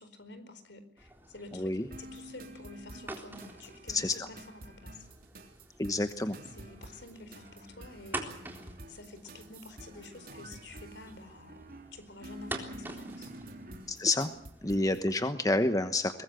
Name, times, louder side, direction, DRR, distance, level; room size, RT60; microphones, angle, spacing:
voice 1, 0.0-1.7 2.0-5.1 6.5-8.3 8.9-11.6 11.9-13.3 14.6-14.9, left 2 dB, 65° left, 10 dB, 4.6 m, -49 dB
sound 1, 1.0-15.1, right 1 dB, 10° right, 3.8 m, -47 dB
voice 2, 1.5-1.9 3.9-4.2 5.8-6.4 13.9-14.3 14.6-16.2, left 2 dB, 20° left, 9 dB, 1.1 m, -28 dB
sound 2, 1.9-15.0, right 1 dB, 50° right, 3.4 m, -49 dB
23.0 x 20.5 x 7.7 m, 0.63 s
head